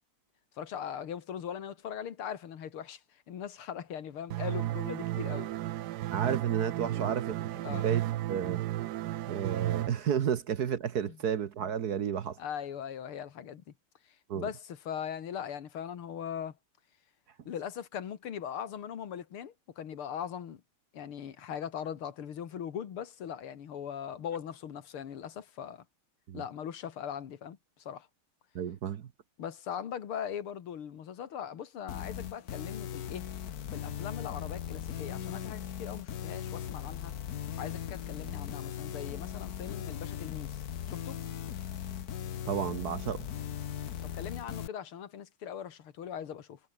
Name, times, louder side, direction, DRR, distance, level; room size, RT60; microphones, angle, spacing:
voice 1, 0.6-3.0 3.3-5.5 6.8-7.2 7.6-7.9 11.1-11.2 12.4-13.6 14.3-16.5 17.5-20.6 20.9-25.8 26.3-27.6 27.9-28.1 29.4-33.3 33.7-37.1 37.6-40.6 40.9-41.2 44.1-46.6, left 8 dB, 85° left, 2.5 m, -40 dB
sound 1, 4.3-9.9, right 14 dB, 75° right, 1.0 m, -33 dB
voice 2, 6.1-8.6 9.3-12.4 14.3-14.5 26.3-26.4 28.5-29.0 42.4-43.3, right 8 dB, 55° right, 1.4 m, -32 dB
sound 2, 31.9-44.7, left 10 dB, 55° left, 1.3 m, -38 dB
omnidirectional pair, 2.3 m